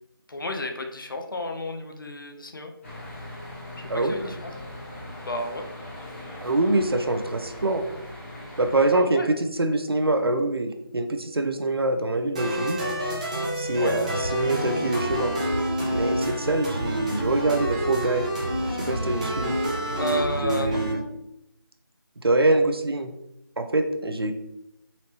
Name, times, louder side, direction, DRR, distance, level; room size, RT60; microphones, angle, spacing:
voice 1, 0.3-2.7 3.9-4.4 5.2-5.7 8.9-9.3 13.8-14.0 20.0-20.8, left 1 dB, 60° left, 4 dB, 0.6 m, -31 dB
sound 1, 2.8-8.9, left 1 dB, 30° left, 1.5 m, -40 dB
voice 2, 6.4-7.8 8.6-12.8 13.6-15.3 15.9-18.3 18.7-19.5 20.4-21.0 22.2-23.1 23.6-24.3, right 2 dB, 85° right, 7 dB, 0.6 m, -24 dB
Tiny Chiptune, 12.4-20.9, equal, 20° right, 0.5 m, -28 dB
4.0 x 3.2 x 2.9 m, 0.84 s
figure-of-eight pair, 165°, 12 cm